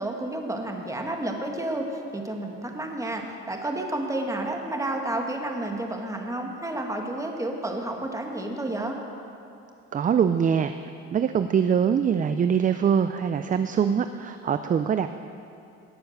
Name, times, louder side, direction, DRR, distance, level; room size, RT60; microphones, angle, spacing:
voice 1, 0.0-9.0, right 1 dB, 10° right, 2 dB, 1.6 m, -31 dB
voice 2, 9.9-10.7 11.1-15.1, right 7 dB, 25° right, 10 dB, 0.4 m, -23 dB
18.5 x 7.1 x 6.6 m, 2.6 s
cardioid pair, 110°, 30 cm